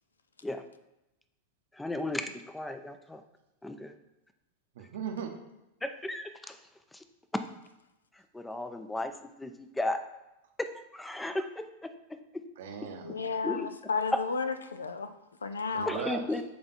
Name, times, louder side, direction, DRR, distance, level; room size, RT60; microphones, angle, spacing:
voice 1, 1.8-3.2 3.6-3.9 5.8-6.6 6.9-7.0 8.3-9.1 9.4-10.0 10.6-11.9 12.3-12.4 13.4-13.7 14.1-14.2 15.9-16.4, left 2 dB, 5° left, 8 dB, 0.5 m, -34 dB
voice 2, 4.7-5.4 12.6-13.2 15.7-16.4, right 7 dB, 55° right, 4 dB, 0.9 m, -38 dB
voice 3, 13.0-15.1 15.4-16.0, left 5 dB, 75° left, 10 dB, 0.4 m, -33 dB
7.7 x 3.4 x 4.1 m, 0.92 s
figure-of-eight pair, 90°, 0 cm